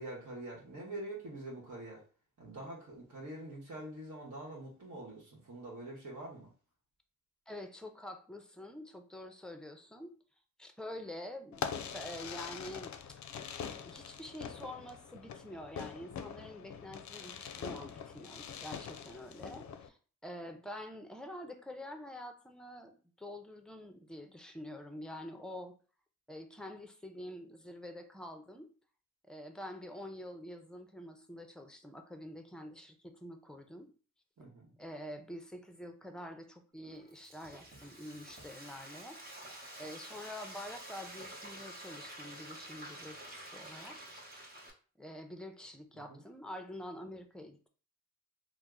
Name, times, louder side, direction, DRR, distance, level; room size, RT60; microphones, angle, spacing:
voice 1, 0.0-2.0 2.4-6.5 34.4-34.8 46.1-46.2, right 1 dB, 60° right, -4 dB, 1.0 m, -45 dB
voice 2, 7.5-10.1 10.6-13.2 13.8-25.7 26.3-28.7 29.3-33.9 34.8-39.2 39.8-44.0 45.0-47.7, left 1 dB, ahead, 6 dB, 0.5 m, -47 dB
Fireworks, 11.5-19.9, left 7 dB, 60° left, 0.4 m, -43 dB
Frying (food), 36.8-44.7, right 1 dB, 30° right, 0.9 m, -49 dB
2.8 x 2.1 x 3.6 m, 0.39 s
cardioid pair, 60°, 33 cm